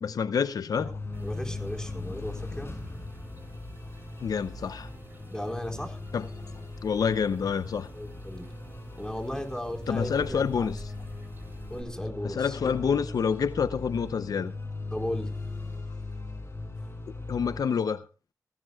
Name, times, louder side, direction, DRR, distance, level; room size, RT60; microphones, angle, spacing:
voice 1, 0.0-1.0 4.2-4.9 6.1-6.3 6.8-7.9 9.9-10.8 12.2-14.5 17.3-18.0, left 6 dB, 85° left, 0.6 m, -27 dB
sound 1, 0.7-17.6, left 3 dB, 40° left, 6.4 m, -39 dB
sound 2, 1.1-11.8, right 2 dB, 35° right, 3.7 m, -48 dB
voice 2, 1.2-2.7 5.3-6.0 7.9-8.5 9.0-10.7 11.7-12.6 14.9-15.3, left 1 dB, 10° left, 4.3 m, -36 dB
20.5 x 17.0 x 2.3 m
cardioid pair, 60°, 6 cm